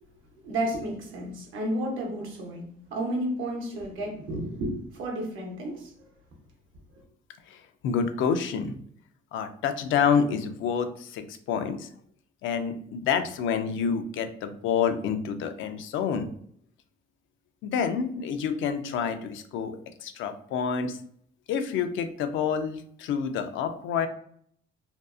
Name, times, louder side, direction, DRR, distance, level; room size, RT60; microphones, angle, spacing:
voice 1, 0.4-6.1 6.9-7.0, right 1 dB, 80° right, 1 dB, 0.8 m, -32 dB
voice 2, 7.8-8.8 9.3-11.9 12.4-16.3 17.6-21.0 21.5-24.1, left 6 dB, 80° left, 8 dB, 0.4 m, -28 dB
2.6 x 2.3 x 2.3 m, 0.64 s
cardioid pair, 90°, 20 cm